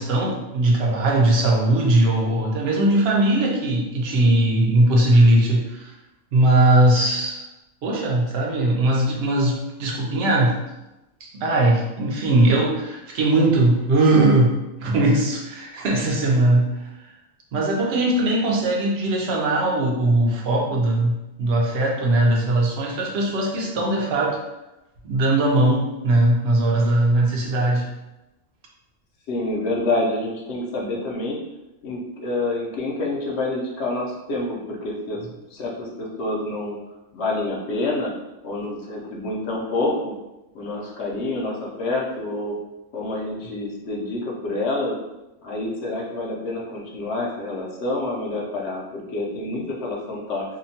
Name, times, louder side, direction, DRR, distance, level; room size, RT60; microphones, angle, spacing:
voice 1, 0.0-5.9 6.3-7.4 7.8-10.5 11.2-14.5 14.8-16.7 17.0-17.1 17.5-24.4 25.0-27.9, right 2 dB, 60° right, -1 dB, 0.7 m, -19 dB
voice 2, 29.3-31.4 31.8-35.2 35.5-36.8 37.1-38.1 38.4-40.1 40.5-42.5 42.9-44.9 45.4-50.4, left 2 dB, 65° left, -2 dB, 0.8 m, -27 dB
2.8 x 2.1 x 2.7 m, 0.97 s
omnidirectional pair, 1.4 m